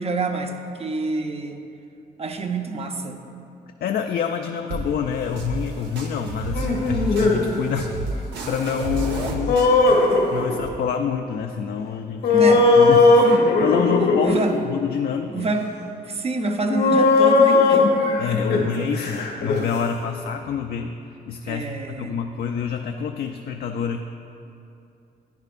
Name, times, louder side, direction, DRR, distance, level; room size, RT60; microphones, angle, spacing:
voice 1, 0.0-1.6 2.2-3.2 12.3-12.7 14.2-14.5 15.3-15.7 16.0-17.9 21.5-22.2, right 3 dB, 35° right, 5 dB, 0.7 m, -27 dB
voice 2, 3.8-9.6 9.9-12.5 12.8-13.2 13.6-15.4 18.2-20.9 21.3-24.0, left 7 dB, 65° left, 5 dB, 0.4 m, -27 dB
sound 1, 4.7-10.7, right 2 dB, 85° right, 0.9 m, -31 dB
sound 2, 6.5-7.4 9.5-10.6 12.2-14.4 15.5-15.6 16.7-19.6, left 3 dB, 80° left, 1.3 m, -17 dB
10.5 x 9.7 x 2.5 m, 2.7 s
cardioid pair, 90°, 17 cm